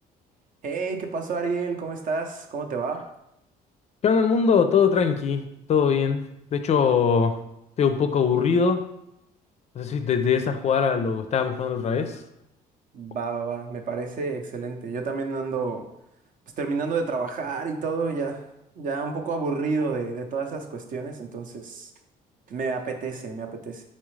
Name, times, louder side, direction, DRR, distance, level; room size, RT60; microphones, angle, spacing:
voice 1, 0.6-3.0 12.9-15.8 16.6-18.4 18.8-21.9 22.5-23.8, right 4 dB, 55° right, 5 dB, 0.7 m, -29 dB
voice 2, 4.0-5.4 5.7-6.3 6.5-7.4 7.8-8.8 9.8-12.2, left 6 dB, 40° left, 8 dB, 0.4 m, -21 dB
4.2 x 3.6 x 3.2 m, 0.83 s
cardioid pair, 110°, 17 cm